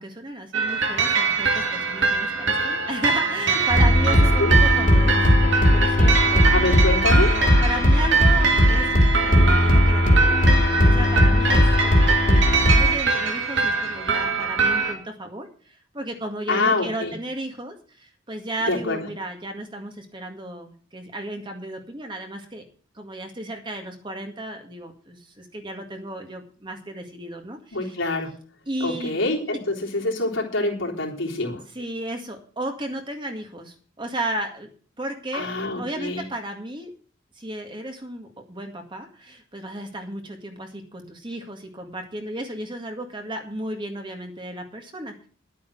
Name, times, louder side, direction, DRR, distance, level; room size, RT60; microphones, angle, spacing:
voice 1, 0.0-6.4 7.3-8.9 9.2-10.4 10.8-12.4 12.7-15.5 15.9-17.7 18.3-22.6 23.0-25.2 25.5-27.6 27.8-27.9 28.7-29.2 31.8-33.7 34.0-34.7 35.0-35.5 35.8-36.9 37.4-45.1, right 1 dB, 25° right, 4 dB, 1.9 m, -33 dB
sound 1, 0.5-14.9, right 5 dB, 65° right, 2.6 m, -23 dB
sound 2, 3.7-12.9, left 1 dB, 45° left, 2.6 m, -18 dB
voice 2, 6.4-7.4 16.5-17.1 18.6-19.1 27.7-28.4 28.8-31.6 35.3-36.2, left 2 dB, 90° left, -2 dB, 3.7 m, -25 dB
11.5 x 8.6 x 6.3 m, 0.42 s
head